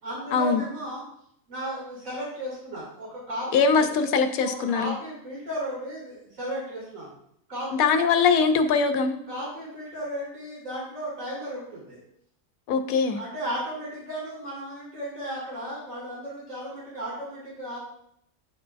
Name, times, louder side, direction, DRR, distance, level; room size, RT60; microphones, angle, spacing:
voice 1, 0.0-1.0 1.5-3.9 4.4-7.1 7.5-7.9 9.3-12.0 13.0-17.8, equal, 65° right, -5 dB, 2.8 m, -35 dB
voice 2, 3.5-4.9 7.7-9.2 12.7-13.2, left 5 dB, 80° left, 8 dB, 1.1 m, -22 dB
9.7 x 4.5 x 2.5 m, 0.72 s
omnidirectional pair, 1.5 m